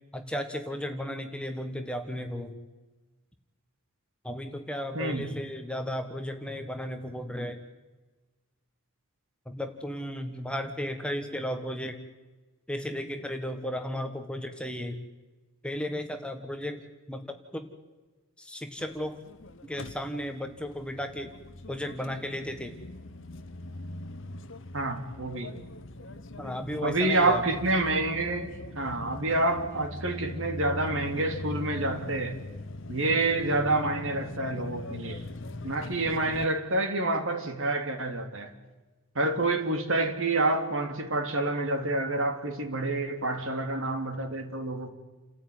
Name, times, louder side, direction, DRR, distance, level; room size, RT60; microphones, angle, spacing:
voice 1, 0.1-2.6 4.2-7.6 9.5-12.0 12.7-15.0 15.6-16.8 17.1-17.3 17.5-17.7 18.4-19.2 19.6-21.3 21.7-22.8 26.4-27.4, equal, 5° left, 6 dB, 1.4 m, -34 dB
voice 2, 4.9-5.3 24.7-25.5 26.8-32.3 32.9-35.2 35.6-38.5 39.1-44.9, right 2 dB, 65° right, 5 dB, 3.0 m, -28 dB
sound 1, 18.8-36.5, left 2 dB, 60° left, 1.0 m, -41 dB
29.5 x 14.0 x 9.5 m, 1.2 s
head